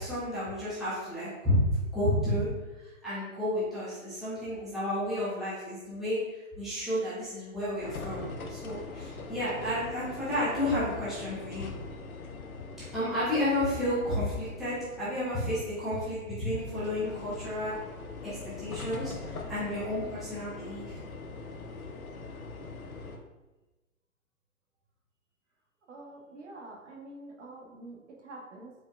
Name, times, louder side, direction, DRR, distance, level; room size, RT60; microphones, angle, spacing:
voice 1, 0.0-1.6 1.9-2.5 2.8-11.7 12.9-17.7 18.2-21.0, left 1 dB, ahead, -12 dB, 0.7 m, -31 dB
sound 1, 7.8-23.2, left 3 dB, 80° left, 0.7 m, -42 dB
voice 2, 25.9-28.7, right 2 dB, 55° right, -1 dB, 1.1 m, -46 dB
4.6 x 3.4 x 2.4 m, 1.1 s
figure-of-eight pair, 125°, 42 cm